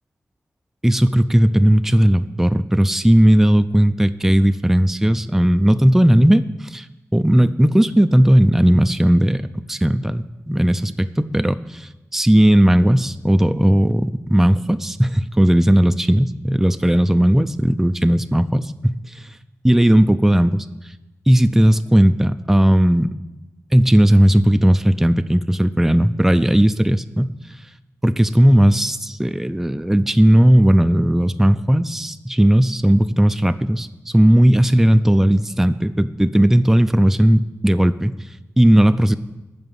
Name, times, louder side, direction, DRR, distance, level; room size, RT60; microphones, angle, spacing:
voice 1, 0.8-6.9 7.1-19.0 19.6-20.7 21.3-23.1 23.7-27.3 28.0-33.9 34.1-38.1 38.6-39.2, equal, 5° right, 11 dB, 0.4 m, -16 dB
9.2 x 5.9 x 8.2 m, 1.0 s
wide cardioid pair, 125°, 5 cm